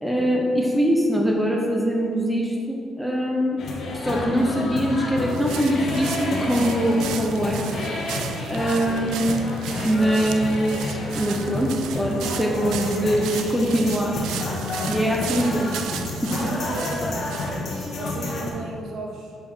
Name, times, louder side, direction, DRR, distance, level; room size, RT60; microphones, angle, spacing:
voice 1, 0.0-3.6 3.9-7.6 8.1-8.2 8.5-9.4 9.8-14.2 14.9-15.7 16.2-16.5, equal, 5° right, -1 dB, 0.9 m, -23 dB
sound 1, 3.6-18.5, left 2 dB, 60° left, 1.5 m, -30 dB
sound 2, 5.3-17.6, right 9 dB, 90° right, 0.4 m, -36 dB
voice 2, 16.3-17.5 17.8-19.4, right 2 dB, 70° right, 0 dB, 1.2 m, -34 dB
7.0 x 4.5 x 5.6 m, 2.3 s
cardioid pair, 90°, 0 cm